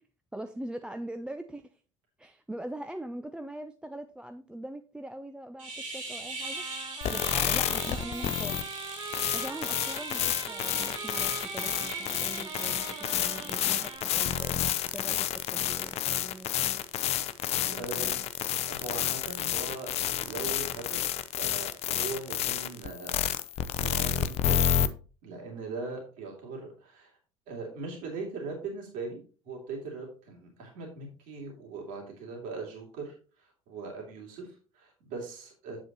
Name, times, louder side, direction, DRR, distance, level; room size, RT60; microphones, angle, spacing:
voice 1, 0.3-1.7 2.2-6.7 7.1-8.6 9.3-12.9 13.1-16.8 17.6-18.2, right 1 dB, 5° right, 8 dB, 0.5 m, -42 dB
sound 1, 5.6-14.0, right 2 dB, 80° right, 4.1 m, -41 dB
sound 2, 6.4-14.8, right 5 dB, 25° right, 0.9 m, -43 dB
sound 3, 7.0-24.9, left 10 dB, 40° left, 0.6 m, -30 dB
voice 2, 17.7-18.2 18.7-23.2 23.5-24.8 25.2-27.2 27.5-29.2 29.4-35.8, right 3 dB, 55° right, 0 dB, 2.9 m, -40 dB
8.6 x 7.7 x 3.0 m, 0.36 s
figure-of-eight pair, 65°, 17 cm